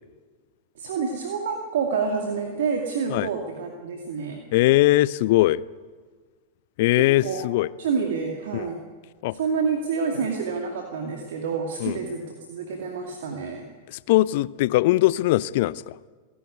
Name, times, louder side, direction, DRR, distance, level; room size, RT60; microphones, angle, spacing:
voice 1, 0.8-4.4 7.2-7.5 7.8-8.8 9.3-13.7, right 5 dB, 60° right, 2 dB, 2.3 m, -28 dB
voice 2, 4.5-5.6 6.8-7.7 8.5-8.7 9.2-9.4 11.8-12.0 13.9-16.0, left 17 dB, 50° left, 19 dB, 0.6 m, -21 dB
28.0 x 11.5 x 9.6 m, 1.5 s
figure-of-eight pair, 90°, 0 cm